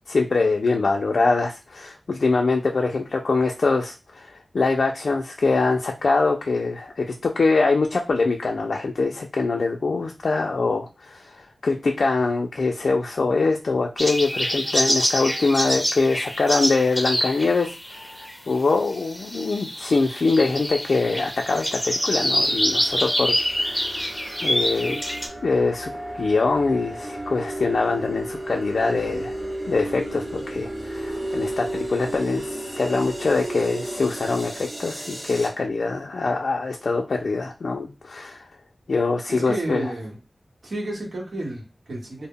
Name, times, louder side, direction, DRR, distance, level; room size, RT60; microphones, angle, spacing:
voice 1, 0.1-17.7 18.1-24.0 24.4-25.0 25.4-25.9 26.2-29.3 29.7-38.4 38.9-39.8, left 3 dB, 80° left, 1 dB, 0.3 m, -23 dB
sound 1, 14.0-25.3, equal, ahead, 0.6 m, -26 dB
sound 2, 20.6-35.5, right 1 dB, 40° right, 0.9 m, -34 dB
voice 2, 39.3-40.2 40.6-42.3, right 1 dB, 80° right, -1 dB, 1.0 m, -31 dB
2.1 x 2.0 x 3.5 m, 0.28 s
wide cardioid pair, 90°, 0 cm